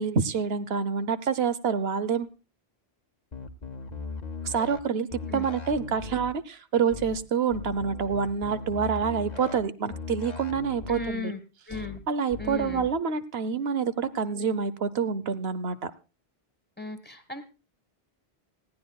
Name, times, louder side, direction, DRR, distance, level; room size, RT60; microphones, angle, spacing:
voice 1, 0.0-2.3 4.4-11.3 12.1-15.9, right 6 dB, 75° right, 14 dB, 1.1 m, -27 dB
sound 1, 3.3-4.8 5.1-6.3 6.9-7.2 7.5-9.6 9.9-11.1 11.7-12.0 12.3-12.9, left 5 dB, 45° left, 1.0 m, -38 dB
voice 2, 10.9-11.4 11.7-12.0 12.4-12.9 16.8-17.4, left 3 dB, 10° left, 9 dB, 1.5 m, -36 dB
19.5 x 15.5 x 2.3 m, 0.32 s
omnidirectional pair, 1.1 m